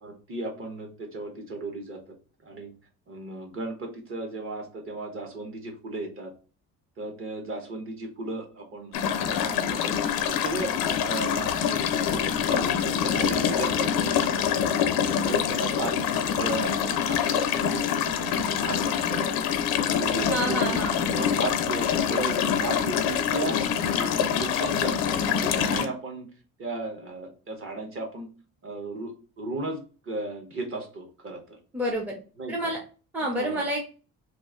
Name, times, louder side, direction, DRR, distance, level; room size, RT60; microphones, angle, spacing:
voice 1, 0.0-2.0 2.4-2.7 3.1-6.3 7.0-8.9 9.2-10.0 10.3-10.7 11.0-11.9 12.4-14.9 15.2-17.8 18.2-19.5 20.0-20.8 21.1-23.6 23.9-26.3 26.6-28.3 28.6-31.6 32.4-32.7 33.3-33.7, right 2 dB, 35° right, 3 dB, 1.0 m, -35 dB
sound 1, 8.9-25.9, left 8 dB, 85° left, 0.7 m, -25 dB
voice 2, 20.3-21.0 31.7-32.2 32.5-32.8 33.1-33.8, equal, 5° right, -1 dB, 0.6 m, -28 dB
3.0 x 2.5 x 3.6 m, 0.35 s
cardioid pair, 155°, 35 cm